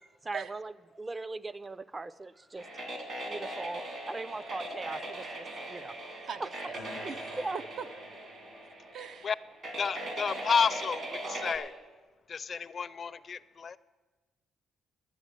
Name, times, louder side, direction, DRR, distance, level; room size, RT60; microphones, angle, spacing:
voice 1, 0.0-2.7 3.1-5.9 6.4-6.5 7.4-7.6, right 3 dB, 25° right, 17 dB, 0.4 m, -39 dB
sound 1, 2.6-11.6, right 1 dB, 55° right, 2.4 m, -40 dB
voice 2, 6.3-7.4 7.8-7.9 8.9-9.3, right 7 dB, 70° right, 10 dB, 0.6 m, -41 dB
sound 2, 6.7-8.8, left 1 dB, 90° right, 4.8 m, -49 dB
voice 3, 9.8-11.7 12.3-13.8, left 6 dB, 45° left, 16 dB, 0.4 m, -31 dB
11.0 x 7.1 x 9.0 m, 1.3 s
cardioid pair, 90°, 0 cm